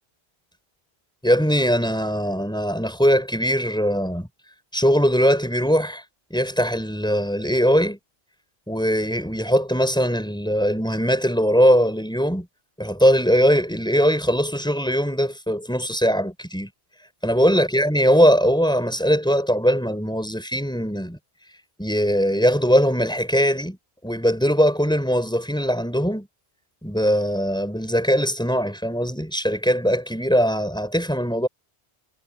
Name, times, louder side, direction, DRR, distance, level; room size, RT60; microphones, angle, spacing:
voice 1, 1.2-4.3 4.7-6.0 6.3-8.0 8.7-12.5 12.8-16.7 17.2-21.2 21.8-23.8 24.0-26.3 26.8-31.5, equal, 5° left, 5.4 m, -20 dB
omnidirectional pair, 1.1 m